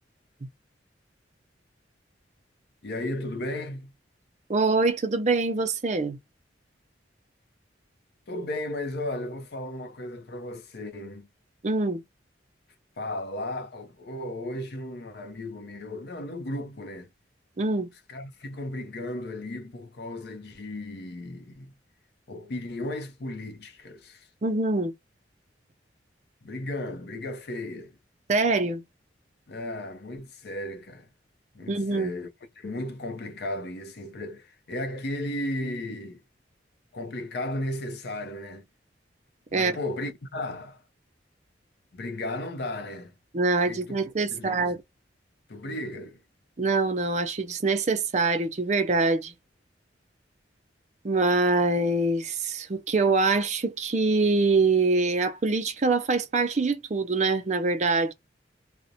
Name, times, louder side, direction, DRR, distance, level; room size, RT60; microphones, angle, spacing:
voice 1, 2.8-3.9 8.3-11.3 13.0-17.1 18.1-21.7 22.3-24.3 26.4-28.0 29.5-31.1 31.5-32.3 32.6-36.2 36.9-38.6 39.5-40.8 41.9-43.1 43.7-44.0 44.3-44.7 45.5-46.2, left 1 dB, 60° left, 0.5 m, -35 dB
voice 2, 4.5-6.2 11.6-12.0 17.6-17.9 24.4-24.9 28.3-28.8 31.7-32.1 39.5-39.7 43.3-44.8 46.6-49.3 51.0-58.1, right 3 dB, 40° right, 0.5 m, -24 dB
2.5 x 2.1 x 2.7 m
head